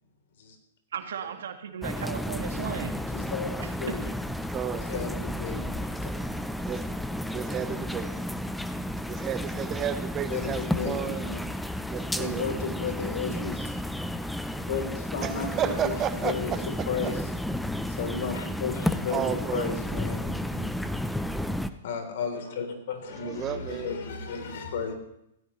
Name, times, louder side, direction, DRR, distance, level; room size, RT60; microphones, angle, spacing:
voice 1, 0.9-3.0 3.6-4.0, right 8 dB, 75° right, 7 dB, 1.6 m, -36 dB
sound 1, 1.8-21.7, left 1 dB, ahead, 0.6 m, -32 dB
voice 2, 3.1-3.5 3.8-4.0 4.8-5.9 7.6-7.8 10.3-11.4 12.1-13.7 14.7-17.3 17.9-21.0 21.8-24.9, left 5 dB, 65° left, 4 dB, 3.4 m, -34 dB
voice 3, 4.5-5.1 6.7-6.8 7.3-8.1 9.1-11.3 11.9-12.6 15.2-16.9 19.1-19.7 23.2-23.9, right 9 dB, 25° right, 11 dB, 0.9 m, -32 dB
16.5 x 16.5 x 3.2 m, 0.80 s
hypercardioid pair, 135°, 0 cm